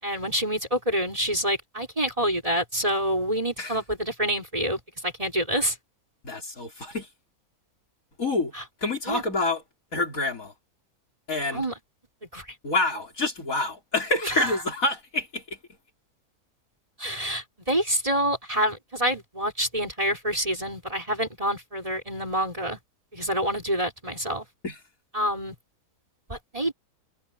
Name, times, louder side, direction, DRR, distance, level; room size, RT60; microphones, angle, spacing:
voice 1, 0.0-5.8 8.5-8.6 9.1-9.2 11.5-11.7 12.3-12.5 14.2-14.6 17.0-22.8 23.1-24.5 25.1-25.6 26.3-26.7, equal, 20° right, 5.2 m, -27 dB
voice 2, 6.2-7.1 8.2-8.5 8.8-9.6 9.9-10.5 11.3-11.6 12.6-15.6 24.6-24.8, left 2 dB, 60° left, 4.6 m, -27 dB
omnidirectional pair, 1.6 m